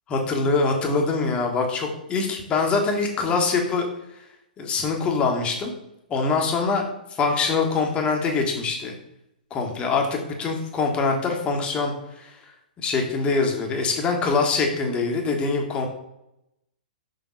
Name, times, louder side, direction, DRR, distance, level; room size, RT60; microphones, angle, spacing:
voice 1, 0.1-3.9 4.6-5.7 6.1-9.0 9.5-12.3 12.8-15.9, left 4 dB, 20° left, 2 dB, 1.7 m, -24 dB
6.4 x 6.4 x 4.1 m, 0.84 s
figure-of-eight pair, 115°, 5 cm